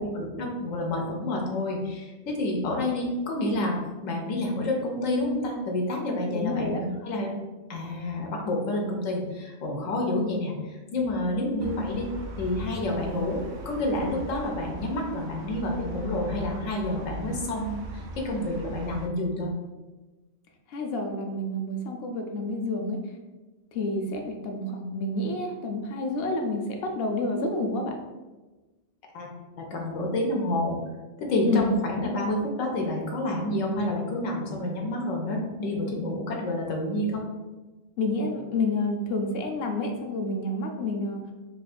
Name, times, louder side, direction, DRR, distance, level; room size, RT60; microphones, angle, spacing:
voice 1, 0.1-3.8 4.0-7.3 7.7-12.1 12.4-19.5 29.1-29.3 29.6-30.8 31.2-37.2, left 1 dB, 85° left, 0 dB, 1.1 m, -29 dB
voice 2, 6.3-6.8 20.7-23.0 23.7-27.9 31.5-31.7 38.0-41.2, left 2 dB, 65° left, 3 dB, 0.7 m, -29 dB
sound 1, 11.6-19.1, right 2 dB, 70° right, 0.4 m, -39 dB
3.1 x 2.4 x 4.2 m, 1.2 s
omnidirectional pair, 1.3 m